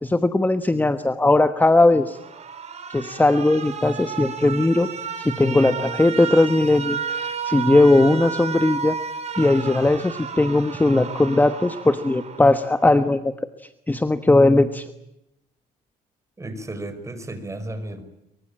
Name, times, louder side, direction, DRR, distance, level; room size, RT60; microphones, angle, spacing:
voice 1, 0.0-2.2 2.9-4.9 5.2-9.0 9.4-13.3 13.9-14.9, left 2 dB, 10° left, 10 dB, 1.2 m, -18 dB
Alarm, 2.0-13.1, right 6 dB, 40° right, 4.7 m, -32 dB
voice 2, 16.4-18.0, right 1 dB, 15° right, 10 dB, 5.3 m, -33 dB
24.5 x 24.0 x 8.8 m, 0.86 s
cardioid pair, 110°, 17 cm